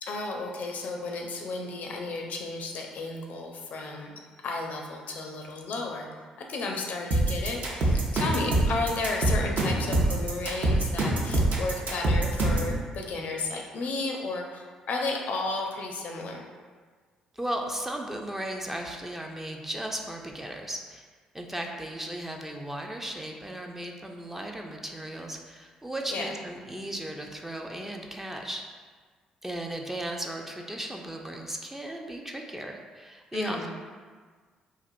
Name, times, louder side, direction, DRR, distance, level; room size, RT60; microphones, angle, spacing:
voice 1, 0.0-6.1 6.4-16.4 26.1-26.3 33.3-33.7, left 3 dB, 55° left, 1 dB, 0.5 m, -33 dB
sound 1, 7.1-12.7, right 1 dB, 50° right, 0.6 m, -24 dB
voice 2, 17.3-21.0 21.3-28.6 29.4-33.7, right 1 dB, 10° right, 2 dB, 0.4 m, -36 dB
4.1 x 2.4 x 2.5 m, 1.5 s
figure-of-eight pair, 45°, 3 cm